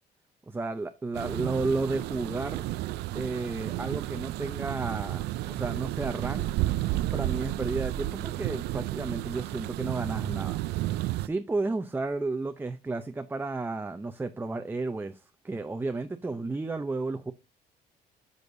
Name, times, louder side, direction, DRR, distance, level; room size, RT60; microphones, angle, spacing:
voice 1, 0.5-2.7 3.1-6.5 7.1-10.6 11.2-17.3, right 3 dB, 10° right, 0.6 m, -32 dB
sound 1, 1.1-11.3, right 16 dB, 80° right, 0.4 m, -32 dB
10.5 x 6.4 x 2.6 m
cardioid pair, 110°, 17 cm